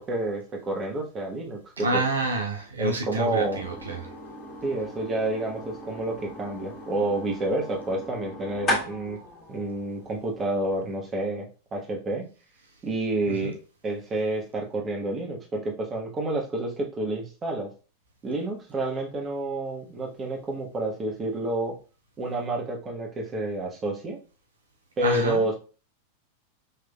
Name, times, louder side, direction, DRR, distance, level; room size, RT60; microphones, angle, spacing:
voice 1, 0.0-2.0 2.8-3.6 4.6-9.2 9.5-12.2 12.8-13.6 13.8-17.7 18.2-21.8 22.2-24.2 25.0-25.6, right 2 dB, 20° right, 1.2 m, -29 dB
voice 2, 1.8-4.0 13.3-13.5 25.0-25.4, right 2 dB, 75° right, 0.6 m, -28 dB
sound 1, 3.2-11.0, left 1 dB, 25° left, 1.8 m, -37 dB
5.6 x 3.2 x 2.3 m
figure-of-eight pair, 90°, 0 cm